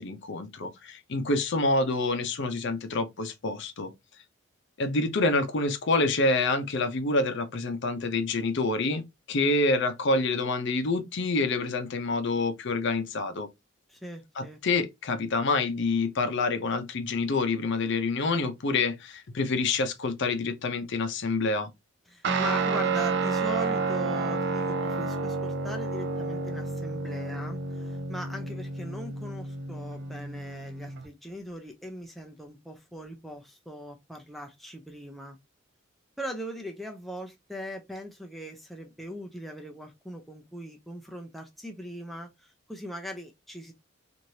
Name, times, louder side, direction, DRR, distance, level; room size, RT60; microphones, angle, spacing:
voice 1, 0.0-3.9 4.8-13.5 14.4-21.7, left 3 dB, 55° left, 0.6 m, -27 dB
voice 2, 13.9-14.6 22.1-35.4 36.2-43.7, equal, ahead, 0.4 m, -40 dB
Guitar, 22.2-31.1, right 4 dB, 55° right, 0.5 m, -30 dB
3.1 x 2.6 x 2.7 m
head